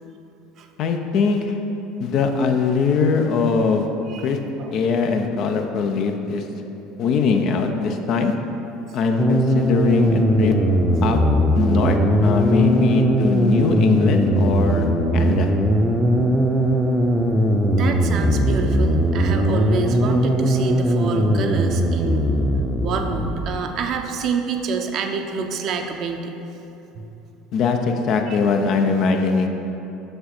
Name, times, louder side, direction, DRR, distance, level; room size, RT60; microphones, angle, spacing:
voice 1, 0.8-1.5 2.0-3.9 4.2-4.4 4.7-6.4 7.0-8.3 8.9-10.6 11.0-11.2 11.5-15.5 27.5-29.5, left 5 dB, 50° left, 5 dB, 0.7 m, -21 dB
sound 1, 9.2-23.7, right 1 dB, 10° right, 0.7 m, -19 dB
voice 2, 17.7-22.2 22.8-26.3 26.9-27.1 28.3-28.4, right 5 dB, 50° right, 5 dB, 0.7 m, -28 dB
6.7 x 6.5 x 4.3 m, 3.0 s
figure-of-eight pair, 65°, 0 cm